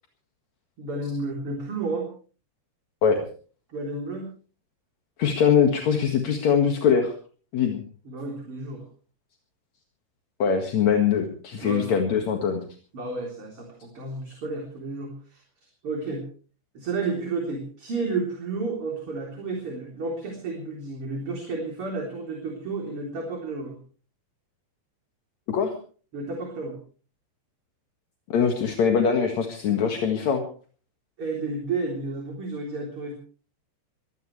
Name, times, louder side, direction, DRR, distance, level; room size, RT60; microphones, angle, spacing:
voice 1, 0.8-2.1 3.7-4.3 8.0-8.8 11.6-12.1 12.9-15.4 15.8-16.3 16.7-23.8 26.1-26.8 31.2-33.1, right 3 dB, 35° right, 0 dB, 4.1 m, -31 dB
voice 2, 5.2-7.1 7.5-7.8 10.4-12.6 25.5-25.7 28.3-30.5, left 7 dB, 50° left, 3 dB, 2.5 m, -22 dB
23.5 x 17.5 x 3.3 m, 0.41 s
omnidirectional pair, 5.0 m